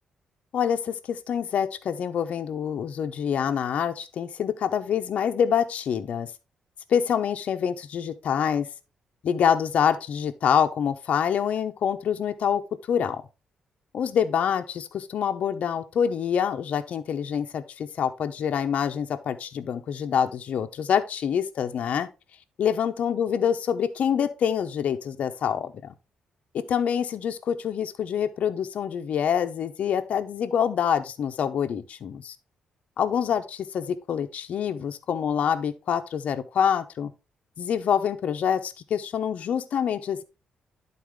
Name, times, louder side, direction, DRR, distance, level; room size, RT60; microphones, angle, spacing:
voice 1, 0.5-6.3 6.9-8.7 9.2-12.6 12.9-13.2 13.9-22.1 22.6-25.9 26.5-32.4 33.0-37.1 37.6-40.2, left 8 dB, 60° left, 0.8 m, -26 dB
11.5 x 4.2 x 3.5 m
cardioid pair, 145°, 3 cm